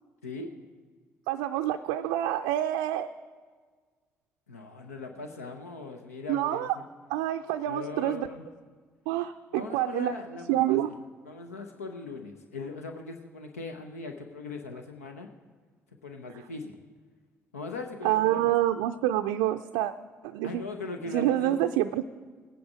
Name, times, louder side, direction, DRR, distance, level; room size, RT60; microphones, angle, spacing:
voice 1, 1.3-3.1 6.3-6.8 7.1-8.3 9.1-10.1 10.5-10.9 18.0-19.9 20.2-20.6 21.1-22.0, right 13 dB, 70° right, 6 dB, 0.4 m, -27 dB
voice 2, 4.5-6.7 7.6-8.4 9.5-10.9 11.2-15.3 16.0-16.7 17.5-18.5 20.4-21.7, left 3 dB, 85° left, 5 dB, 0.7 m, -39 dB
17.0 x 9.4 x 5.0 m, 1.5 s
figure-of-eight pair, 50°, 8 cm